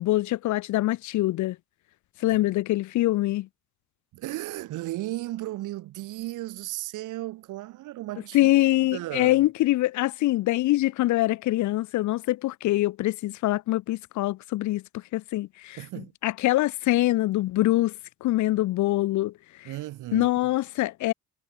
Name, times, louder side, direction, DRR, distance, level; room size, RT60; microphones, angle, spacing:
voice 1, 0.0-1.6 2.2-3.5 8.3-15.8 16.2-17.9 18.2-19.3 20.1-21.1, left 16 dB, 75° left, 0.6 m, -24 dB
voice 2, 4.1-8.6 8.9-9.4 15.8-16.1 19.6-20.3, right 16 dB, 90° right, 1.8 m, -35 dB
cardioid pair, 90°, 30 cm